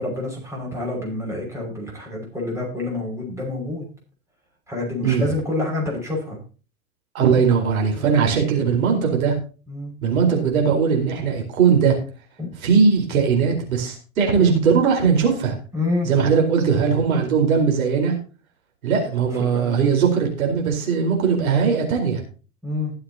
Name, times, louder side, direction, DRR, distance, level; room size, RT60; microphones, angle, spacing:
voice 1, 0.0-3.8 4.7-6.4 7.9-8.1 9.7-9.9 12.4-12.5 15.7-16.1 19.4-19.9 22.6-22.9, left 2 dB, 5° right, -2 dB, 6.0 m, -27 dB
voice 2, 7.1-9.4 10.0-12.0 12.6-15.5 16.0-18.1 18.8-22.2, right 6 dB, 75° right, 1 dB, 4.6 m, -19 dB
20.0 x 7.7 x 2.9 m, 0.35 s
hypercardioid pair, 110°, 43 cm